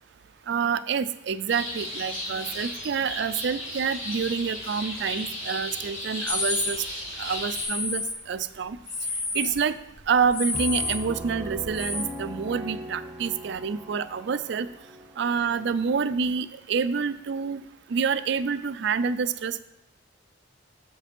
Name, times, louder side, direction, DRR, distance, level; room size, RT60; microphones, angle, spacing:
voice 1, 0.5-6.8 7.2-8.8 9.3-9.8 10.1-14.7 15.2-17.6 17.9-19.6, right 6 dB, 60° right, 14 dB, 0.4 m, -27 dB
sound 1, 1.5-7.6, left 1 dB, 80° left, 2.5 m, -35 dB
sound 2, 6.3-6.7 7.5-8.2 8.6-9.6 9.9-12.0, left 3 dB, 55° left, 1.4 m, -30 dB
Piano, 10.5-16.1, equal, 10° right, 0.7 m, -39 dB
8.1 x 5.0 x 5.2 m, 0.86 s
head